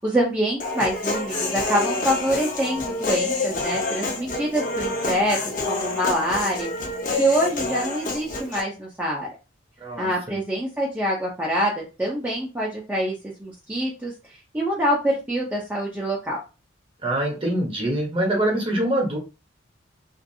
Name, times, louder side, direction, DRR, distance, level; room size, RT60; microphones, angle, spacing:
voice 1, 0.0-6.9 7.2-9.3 10.0-16.4, equal, 10° right, -5 dB, 0.5 m, -25 dB
Human voice, 0.6-8.6, left 2 dB, 45° left, 0.7 m, -28 dB
voice 2, 9.8-10.4 17.0-19.2, right 1 dB, 30° right, -1 dB, 0.9 m, -24 dB
2.5 x 2.5 x 2.6 m, 0.30 s
head